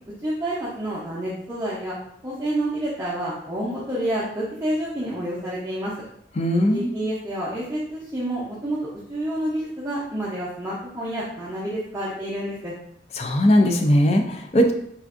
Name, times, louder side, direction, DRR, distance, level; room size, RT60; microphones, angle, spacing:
voice 1, 0.2-2.0 2.2-5.9 6.7-8.8 9.1-12.7, right 1 dB, 15° right, -9 dB, 0.6 m, -28 dB
voice 2, 6.4-6.9 13.2-14.7, equal, 35° left, 4 dB, 0.4 m, -19 dB
4.3 x 2.5 x 2.4 m, 0.71 s
head